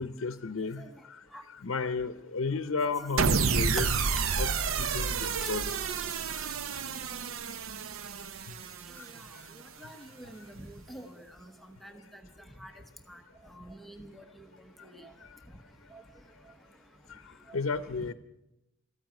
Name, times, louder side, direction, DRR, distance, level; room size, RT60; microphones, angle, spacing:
voice 1, 0.0-1.2 1.5-3.9 4.3-4.5 4.8-5.6 6.1-6.5 9.0-9.1 17.5-18.1, left 4 dB, 75° left, 11 dB, 0.7 m, -33 dB
sound 1, 3.2-9.5, right 5 dB, 85° right, 0.6 m, -30 dB
voice 2, 9.0-9.3 9.6-11.5 11.8-12.2 12.6-14.5 14.8-15.1 15.9-16.0 17.5-17.6, right 1 dB, ahead, 4 dB, 1.0 m, -48 dB
14.0 x 8.9 x 9.3 m, 0.91 s
head